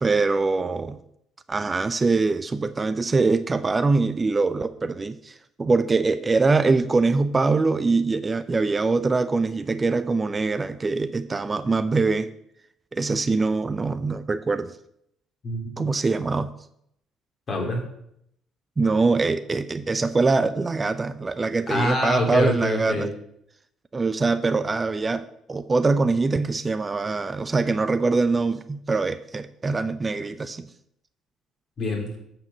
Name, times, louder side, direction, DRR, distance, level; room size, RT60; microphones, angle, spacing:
voice 1, 0.0-1.0 1.5-12.3 12.9-14.7 15.8-16.5 18.8-23.1 23.9-30.7, right 3 dB, 30° right, 12 dB, 0.6 m, -23 dB
voice 2, 15.4-15.8 17.5-17.8 21.7-23.1 31.8-32.1, left 1 dB, 45° left, 0 dB, 3.5 m, -25 dB
8.3 x 5.2 x 7.4 m, 0.74 s
hypercardioid pair, 55°, 0 cm